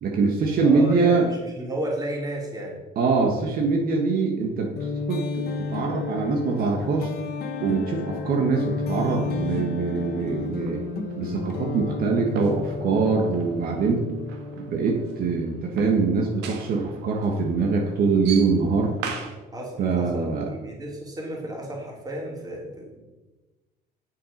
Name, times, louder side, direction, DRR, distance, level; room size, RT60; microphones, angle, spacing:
voice 1, 0.0-1.3 3.0-7.1 7.6-10.8 11.2-14.1 14.6-18.9 19.8-20.5, right 4 dB, 60° right, 1 dB, 1.4 m, -23 dB
voice 2, 0.6-2.8 19.5-23.0, right 1 dB, 20° right, -2 dB, 3.0 m, -33 dB
sound 1, 4.8-15.3, left 4 dB, 70° left, 1.3 m, -32 dB
sound 2, 8.2-19.4, right 5 dB, 85° right, 1.6 m, -41 dB
8.0 x 7.1 x 5.1 m, 1.1 s
cardioid pair, 110°, 17 cm